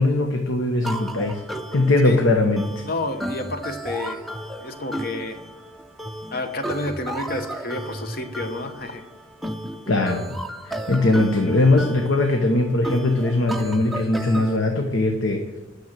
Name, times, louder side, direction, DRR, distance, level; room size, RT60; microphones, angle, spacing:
voice 1, 0.0-1.4 1.7-2.6 9.9-10.2 10.7-15.4, left 2 dB, 75° left, 3 dB, 1.0 m, -20 dB
sound 1, 0.8-14.6, right 1 dB, ahead, 0.5 m, -34 dB
voice 2, 2.8-4.2 4.6-5.4 6.3-9.0, left 2 dB, 50° left, 7 dB, 1.0 m, -30 dB
9.3 x 6.6 x 7.3 m, 1.1 s
head